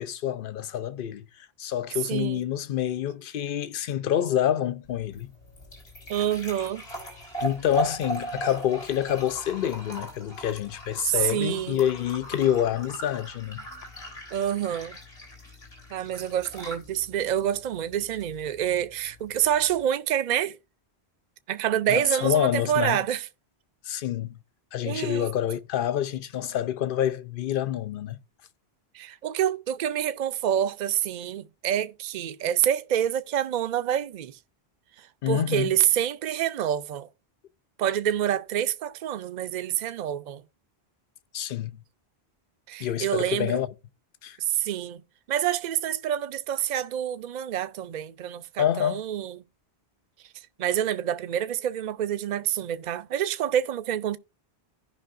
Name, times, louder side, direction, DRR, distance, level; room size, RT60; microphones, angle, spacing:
voice 1, 0.0-5.3 7.4-13.6 21.9-23.0 23.8-24.3 24.7-28.2 35.2-35.7 41.3-41.8 42.8-43.7 44.2-44.4 48.6-49.0, left 10 dB, 60° left, 0.7 m, -27 dB
voice 2, 2.1-2.4 6.1-6.8 11.0-11.8 14.3-15.0 15.9-20.6 21.5-23.3 24.9-25.3 28.9-34.4 35.3-37.1 37.8-40.4 42.7-43.6 44.4-45.0 45.3-49.4 50.6-54.2, right 10 dB, 55° right, 0.6 m, -27 dB
sound 1, 4.8-19.8, right 1 dB, 80° left, 3.6 m, -39 dB
15.5 x 5.4 x 2.5 m
omnidirectional pair, 1.1 m